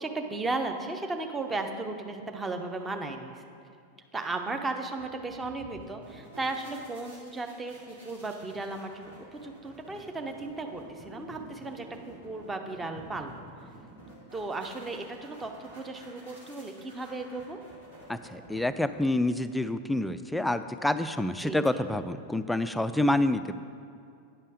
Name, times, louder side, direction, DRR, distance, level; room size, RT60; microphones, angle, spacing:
voice 1, 0.0-3.4 4.1-13.3 14.3-17.6 21.4-21.8, right 3 dB, 15° right, 5 dB, 0.8 m, -35 dB
sound 1, 5.0-19.3, right 1 dB, 70° right, 2.6 m, -50 dB
voice 2, 18.1-23.6, left 1 dB, 5° left, 11 dB, 0.3 m, -28 dB
9.7 x 5.4 x 6.4 m, 2.4 s
figure-of-eight pair, 90°, 0 cm